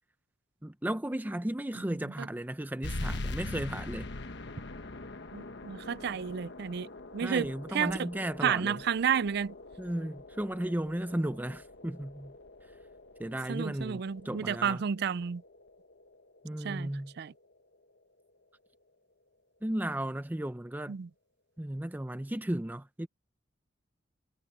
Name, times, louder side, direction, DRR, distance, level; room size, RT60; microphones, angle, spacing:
voice 1, 0.6-4.1 7.2-8.8 9.8-12.3 13.2-14.8 16.4-17.1 19.6-20.9 21.6-23.1, right 1 dB, 10° right, 0.5 m, -35 dB
sound 1, 2.8-17.9, left 2 dB, 60° left, 1.2 m, -43 dB
voice 2, 5.3-6.9 7.1-8.1 8.4-9.5 13.5-15.4 16.6-17.3 20.9-21.1, right 7 dB, 55° right, 0.4 m, -31 dB
head